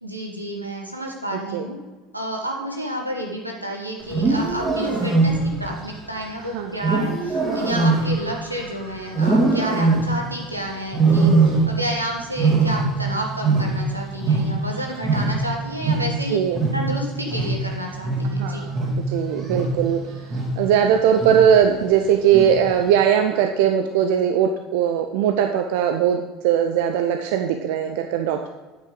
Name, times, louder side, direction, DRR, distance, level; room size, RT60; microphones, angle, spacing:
voice 1, 0.0-1.8 2.1-16.4 16.7-18.7, equal, 90° right, 0 dB, 1.5 m, -30 dB
Wild animals, 4.0-5.7 6.8-8.7 9.1-10.3 10.9-12.0 12.2-14.8 15.0-19.9 20.3-20.7 21.2-21.6 22.3-22.8, right 3 dB, 25° right, 2.5 m, -21 dB
voice 2, 18.4-18.8 19.1-20.0 20.6-28.5, right 8 dB, 60° right, 5 dB, 0.6 m, -19 dB
9.1 x 8.6 x 3.9 m, 1.2 s
figure-of-eight pair, 70°, 0 cm